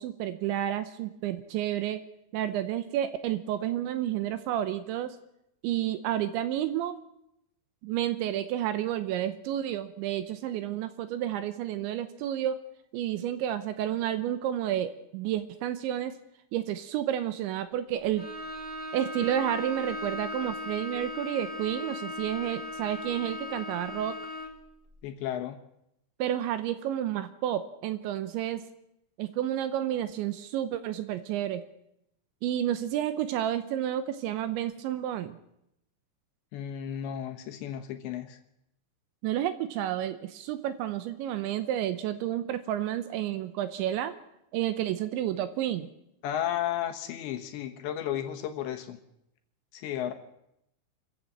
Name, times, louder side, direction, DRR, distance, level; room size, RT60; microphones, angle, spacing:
voice 1, 0.0-2.0 2.3-5.2 5.6-7.0 7.8-12.6 12.9-16.1 16.5-18.2 18.9-24.2 26.2-28.6 29.2-31.6 32.4-35.4 39.2-44.1 44.5-45.9, right 11 dB, 75° right, 11 dB, 3.0 m, -30 dB
Bowed string instrument, 18.1-24.7, left 2 dB, 35° right, 0.8 m, -38 dB
voice 2, 25.0-25.6 36.5-38.4 46.2-49.0 49.7-50.1, left 10 dB, 70° left, 6 dB, 3.2 m, -33 dB
26.0 x 15.0 x 7.5 m, 0.80 s
omnidirectional pair, 5.8 m